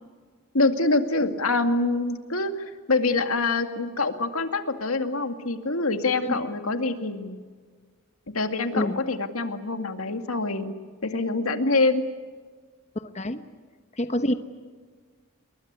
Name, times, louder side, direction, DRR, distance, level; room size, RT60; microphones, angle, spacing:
voice 1, 0.5-7.4 8.3-10.7 11.0-12.0, left 3 dB, 90° left, 7 dB, 2.3 m, -25 dB
voice 2, 13.0-13.4 14.0-14.3, left 1 dB, 30° left, 9 dB, 1.1 m, -27 dB
28.5 x 22.5 x 8.3 m, 1.5 s
head